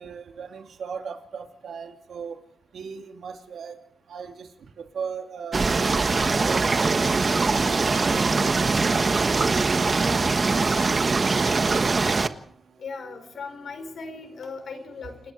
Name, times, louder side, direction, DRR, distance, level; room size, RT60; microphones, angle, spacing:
voice 1, 0.0-2.4 2.7-3.8 4.1-5.9 6.3-7.8 8.3-12.3 13.0-13.2, right 6 dB, 90° right, 5 dB, 3.0 m, -38 dB
sound 1, 5.5-12.3, right 4 dB, 40° right, 1.3 m, -22 dB
voice 2, 10.0-10.8 12.8-15.3, left 4 dB, 75° left, 8 dB, 4.7 m, -39 dB
28.5 x 19.0 x 4.8 m, 0.68 s
wide cardioid pair, 100°, 0 cm